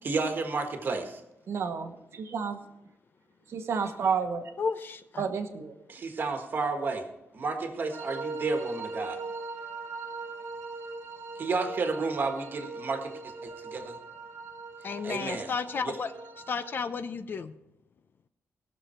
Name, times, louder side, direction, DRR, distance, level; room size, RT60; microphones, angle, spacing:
voice 1, 0.0-1.2 5.9-7.0 7.3-9.2 11.4-13.1 13.4-14.0 15.0-15.5 15.8-15.9, right 4 dB, 45° right, 5 dB, 1.4 m, -31 dB
voice 2, 1.5-2.6 3.5-4.5 5.2-5.7, right 6 dB, 60° right, 7 dB, 1.1 m, -31 dB
voice 3, 4.6-5.2 14.8-16.1 16.5-17.5, left 5 dB, 45° left, 10 dB, 0.5 m, -32 dB
sound 1, 7.9-16.9, right 3 dB, 80° right, 1.5 m, -40 dB
18.0 x 6.7 x 4.4 m, 0.89 s
wide cardioid pair, 170°, 5 cm